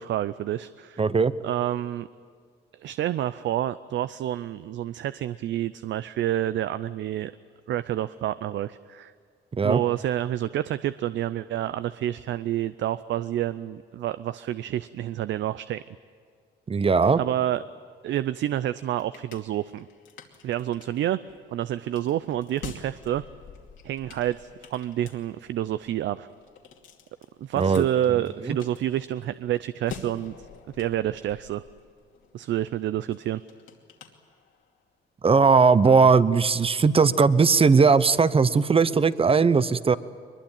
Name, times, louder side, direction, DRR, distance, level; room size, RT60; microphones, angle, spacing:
voice 1, 0.0-1.0 1.4-2.1 2.7-7.3 7.7-9.1 9.6-15.8 17.2-17.6 18.0-19.9 20.4-21.2 21.5-23.2 23.8-26.3 27.4-30.5 30.7-31.6 32.3-33.4, right 12 dB, 70° right, 15 dB, 0.5 m, -28 dB
voice 2, 1.0-1.3 9.5-9.8 16.7-17.2 27.5-27.8 28.5-28.6 35.2-40.0, right 5 dB, 30° right, 15 dB, 0.9 m, -19 dB
sound 1, 18.6-34.8, left 6 dB, 75° left, 2.6 m, -48 dB
22.5 x 21.5 x 8.9 m, 2.1 s
cardioid pair, 90°, 20 cm